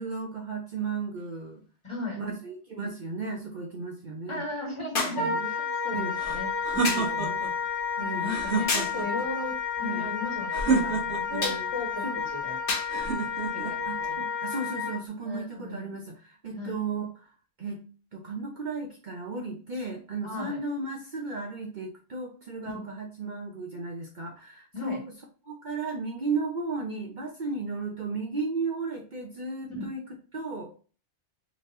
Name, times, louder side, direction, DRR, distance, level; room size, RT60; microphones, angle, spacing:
voice 1, 0.0-1.6 2.2-4.4 5.0-5.6 5.9-6.2 6.8-7.5 8.0-8.5 9.8-10.2 11.3-11.7 12.0-12.2 13.8-17.3 17.6-17.8 18.1-25.1 25.4-30.0 30.3-30.7, right 3 dB, 45° right, 0 dB, 0.8 m, -35 dB
sound 1, 1.2-1.3 4.9-5.3 6.8-7.2 8.7-9.0 11.4-11.7 12.7-13.0 14.0-14.1, left 3 dB, 55° left, 1.1 m, -30 dB
voice 2, 1.8-2.3 4.3-7.4 8.0-12.5 12.9-13.3 13.5-14.2 15.2-15.9 16.5-16.8 20.2-20.6 24.7-25.0 29.8-29.9, left 2 dB, 25° left, -2 dB, 1.4 m, -37 dB
Wind instrument woodwind instrument, 5.1-15.0, left 6 dB, 85° left, 1.6 m, -31 dB
sound 2, 6.1-7.5 8.2-9.2 10.5-11.4 12.9-13.7, right 4 dB, 80° right, 1.5 m, -29 dB
3.9 x 3.3 x 2.7 m, 0.38 s
omnidirectional pair, 1.2 m